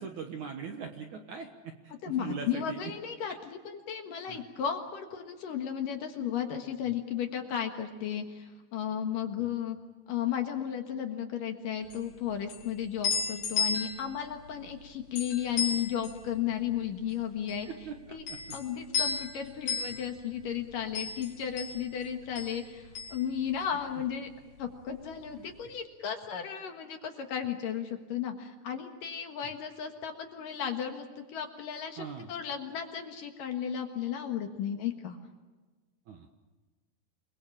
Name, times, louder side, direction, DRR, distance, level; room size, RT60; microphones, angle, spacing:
voice 1, 0.0-2.8 4.3-4.4 9.4-9.5 17.7-18.0 18.3-18.6 24.9-25.1 25.4-25.5 32.0-32.3 36.1-36.3, right 6 dB, 60° right, 4 dB, 2.1 m, -41 dB
voice 2, 2.0-9.8 10.1-17.7 18.1-18.2 18.5-24.3 24.6-35.2, left 9 dB, 60° left, 5 dB, 2.8 m, -34 dB
sound 1, 11.8-24.1 24.3-25.4, left 5 dB, 80° left, 6.0 m, -35 dB
29.0 x 21.0 x 7.4 m, 1.3 s
omnidirectional pair, 5.0 m